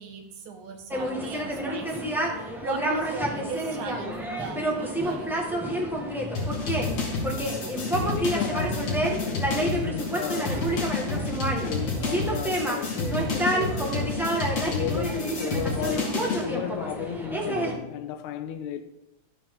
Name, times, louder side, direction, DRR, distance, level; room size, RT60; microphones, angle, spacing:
voice 1, 0.0-5.3, right 5 dB, 80° right, 2.8 m, -39 dB
sound 1, 0.9-17.7, right 1 dB, ahead, 0.4 m, -29 dB
sound 2, 6.4-16.5, left 3 dB, 70° left, 3.7 m, -30 dB
voice 2, 6.7-7.5 7.9-13.9 14.6-18.8, left 9 dB, 90° left, 2.0 m, -34 dB
12.5 x 8.7 x 3.7 m
omnidirectional pair, 3.4 m